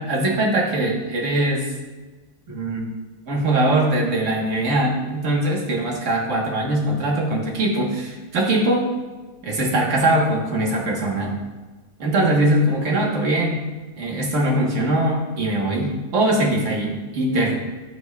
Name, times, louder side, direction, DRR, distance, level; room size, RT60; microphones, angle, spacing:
voice 1, 0.0-1.7 2.5-2.9 3.3-8.9 9.4-11.4 12.0-13.6 14.0-17.6, right 1 dB, 55° right, -1 dB, 1.5 m, -21 dB
11.5 x 4.6 x 2.3 m, 1.3 s
omnidirectional pair, 1.6 m